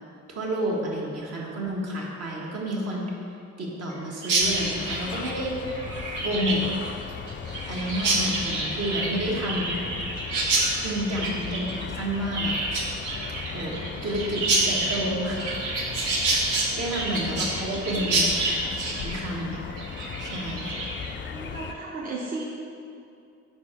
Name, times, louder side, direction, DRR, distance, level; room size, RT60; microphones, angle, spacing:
voice 1, 0.3-3.2 3.6-5.9 6.2-6.7 7.7-9.8 10.8-12.6 13.5-15.5 16.7-18.3 18.6-19.5 20.2-20.7, equal, 55° right, -3 dB, 1.4 m, -30 dB
Chirp tweet, 4.2-21.1, right 2 dB, 90° right, 1.0 m, -28 dB
sound 1, 4.4-21.7, left 6 dB, 40° left, 0.4 m, -37 dB
voice 2, 21.2-22.4, right 3 dB, 30° right, -4 dB, 0.7 m, -36 dB
4.5 x 4.3 x 5.6 m, 2.5 s
cardioid pair, 90°, 30 cm